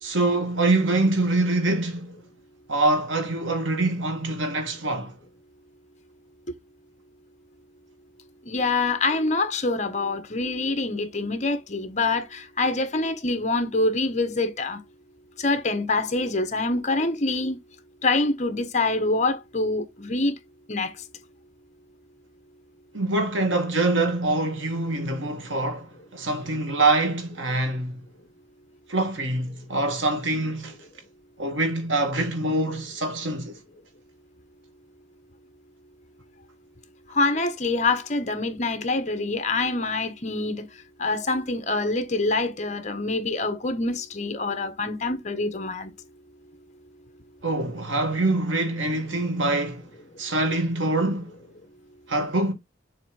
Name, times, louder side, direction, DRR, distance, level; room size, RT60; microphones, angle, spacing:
voice 1, 0.0-2.2 2.7-5.1 22.9-28.0 28.9-30.8 31.4-33.6 47.4-49.9 50.2-51.3 52.1-52.5, right 2 dB, 85° right, 1.8 m, -25 dB
voice 2, 8.5-14.8 15.4-17.6 18.0-20.3 20.7-20.9 37.1-40.7 41.0-45.9, left 3 dB, 40° left, 1.1 m, -25 dB
6.9 x 3.4 x 4.9 m
head